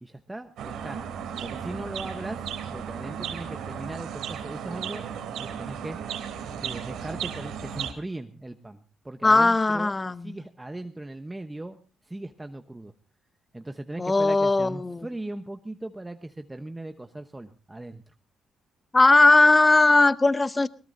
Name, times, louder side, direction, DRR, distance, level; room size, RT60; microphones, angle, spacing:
voice 1, 0.0-1.0 1.4-2.4 2.7-5.0 5.4-6.0 6.6-9.9 10.2-11.8 12.0-12.9 13.5-18.1, right 2 dB, 15° right, 0.9 m, -38 dB
sound 1, 0.6-7.9, right 8 dB, 85° right, 2.8 m, -35 dB
voice 2, 9.2-10.3 14.0-15.1 18.9-20.7, left 2 dB, 20° left, 0.6 m, -19 dB
21.0 x 18.0 x 2.7 m
cardioid pair, 90°, 0 cm